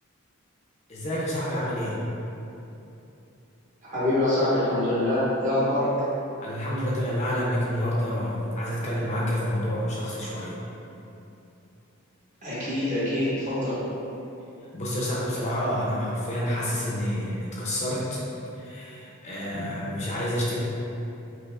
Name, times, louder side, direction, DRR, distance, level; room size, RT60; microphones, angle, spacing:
voice 1, 0.9-2.0 6.4-10.6 14.7-18.2 18.5-20.6, equal, 35° left, -6 dB, 0.5 m, -28 dB
voice 2, 3.8-5.9 12.4-13.8 19.5-19.8, left 1 dB, 35° right, -11 dB, 1.1 m, -25 dB
5.2 x 2.0 x 2.3 m, 2.9 s
head